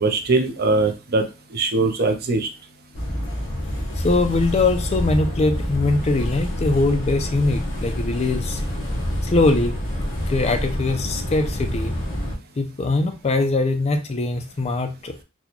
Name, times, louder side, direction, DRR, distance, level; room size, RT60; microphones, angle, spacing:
voice 1, 0.0-1.2 1.5-2.5, right 3 dB, 50° right, 6 dB, 0.6 m, -21 dB
sound 1, 2.9-12.4, equal, 60° left, 1.1 m, -27 dB
voice 2, 4.0-8.6 9.2-9.7 10.3-11.9 12.6-15.1, left 3 dB, 30° left, 7 dB, 0.4 m, -22 dB
4.1 x 2.2 x 2.9 m, 0.29 s
head